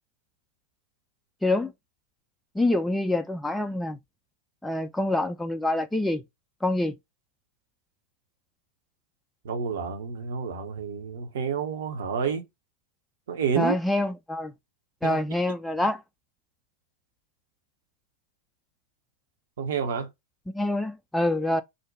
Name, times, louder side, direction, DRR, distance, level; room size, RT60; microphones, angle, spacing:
voice 1, 1.4-1.7 2.5-4.0 4.6-6.2 6.6-7.0 13.6-14.5 15.0-16.0 20.5-21.6, left 1 dB, 5° left, 0.3 m, -26 dB
voice 2, 9.4-12.4 13.3-13.7 15.0-15.2 19.6-20.1, right 6 dB, 60° right, 0.6 m, -29 dB
2.6 x 2.1 x 3.8 m
figure-of-eight pair, 90°, 0 cm